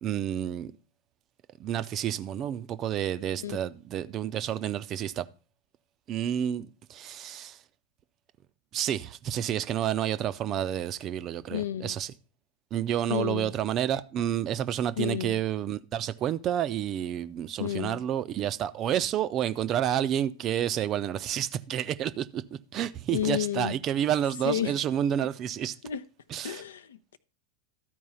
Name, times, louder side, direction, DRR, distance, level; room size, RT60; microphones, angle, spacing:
voice 1, 0.0-0.7 1.6-5.2 6.1-7.6 8.7-12.1 12.7-22.4 22.7-25.7 26.3-26.6, right 10 dB, 30° right, 0.5 m, -29 dB
voice 2, 11.5-12.0 13.1-13.5 15.0-15.4 17.6-18.0 23.1-23.7 24.4-24.8 25.8-26.0 26.4-27.2, left 10 dB, 65° left, 0.5 m, -31 dB
13.0 x 4.6 x 5.5 m
figure-of-eight pair, 90°, 0 cm